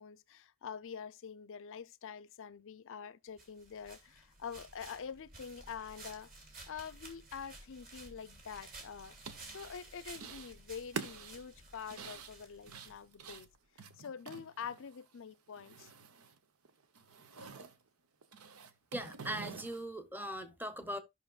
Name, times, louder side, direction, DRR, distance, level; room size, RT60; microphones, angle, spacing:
voice 1, 0.0-6.3 6.7-9.1 9.5-13.5 14.0-15.9, left 6 dB, 65° left, 0.5 m, -46 dB
sound 1, 3.4-13.4, right 2 dB, 45° right, 2.8 m, -54 dB
sound 2, 9.0-9.8 10.1-10.5 10.8-15.1 15.3-16.4 16.6-17.8 18.2-19.8, right 5 dB, 80° right, 0.9 m, -47 dB
voice 2, 18.9-21.0, right 1 dB, 10° right, 0.8 m, -40 dB
14.0 x 5.9 x 2.4 m
head